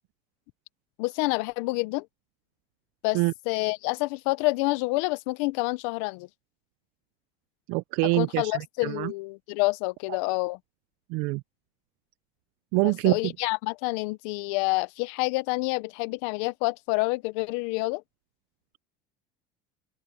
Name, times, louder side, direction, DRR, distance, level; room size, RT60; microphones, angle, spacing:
voice 1, 1.0-2.1 3.0-3.2 3.5-6.3 8.0-10.6 12.8-18.0, left 24 dB, 75° left, 0.6 m, -28 dB
voice 2, 7.7-8.4 8.8-9.1 11.1-11.4 12.7-13.2, right 25 dB, 65° right, 0.4 m, -24 dB
open air
cardioid pair, 165°, 16 cm